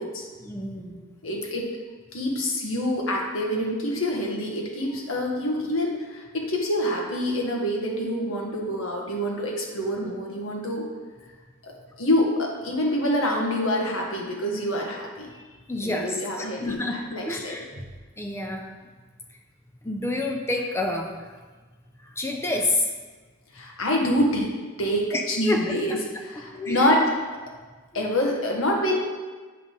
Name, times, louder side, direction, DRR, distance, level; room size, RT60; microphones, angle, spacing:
voice 1, 0.4-1.0 15.7-17.7 18.2-18.7 19.8-21.3 22.0-22.9 25.1-25.7 26.4-27.0 27.9-28.0, left 2 dB, 10° left, 2 dB, 0.5 m, -29 dB
voice 2, 1.2-1.7 2.1-10.9 11.6-11.7 12.0-15.3 15.8-17.5 23.5-24.5 24.8-27.1 27.9-29.0, equal, 85° left, -1 dB, 1.6 m, -26 dB
8.5 x 5.5 x 3.9 m, 1.4 s
head